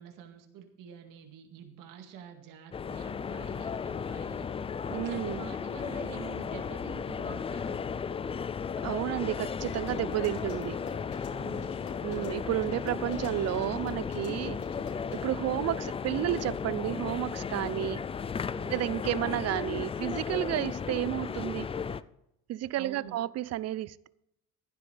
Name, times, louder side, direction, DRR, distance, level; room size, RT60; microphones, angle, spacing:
voice 1, 0.0-4.5 4.9-7.9 11.3-11.8 14.4-14.6 17.7-17.9 18.5-18.9 20.5-20.7 22.8-23.2, right 8 dB, 70° right, 2.1 m, -47 dB
sound 1, 2.7-22.0, left 6 dB, 20° left, 0.3 m, -35 dB
voice 2, 4.9-5.5 8.8-10.8 12.0-14.6 15.1-18.0 18.7-21.7 22.5-24.1, right 14 dB, 50° right, 0.6 m, -31 dB
sound 2, 9.6-15.2, left 5 dB, 90° left, 4.4 m, -48 dB
15.5 x 11.5 x 3.4 m
cardioid pair, 125°, 33 cm